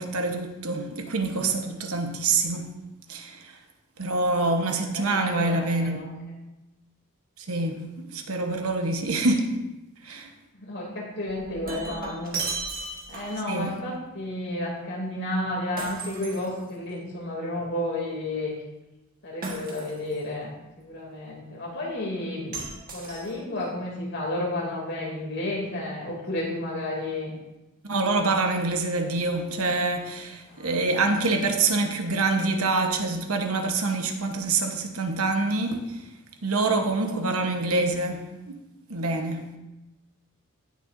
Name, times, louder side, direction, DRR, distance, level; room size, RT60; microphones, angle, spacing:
voice 1, 0.0-2.7 3.1-3.5 4.0-6.0 7.4-9.5 10.0-10.3 13.5-13.7 27.9-36.0 36.4-38.6 38.9-39.4, right 3 dB, 75° right, 1.1 m, -26 dB
voice 2, 4.9-6.1 10.1-10.2 10.5-12.3 13.1-18.5 19.2-20.5 20.8-22.6 22.9-27.3 30.5-30.8, left 1 dB, 50° left, 2.8 m, -32 dB
Shatter, 11.3-13.5 15.8-17.0 19.4-20.2 22.5-23.6, right 3 dB, 40° right, 1.5 m, -35 dB
16.5 x 6.6 x 2.6 m
head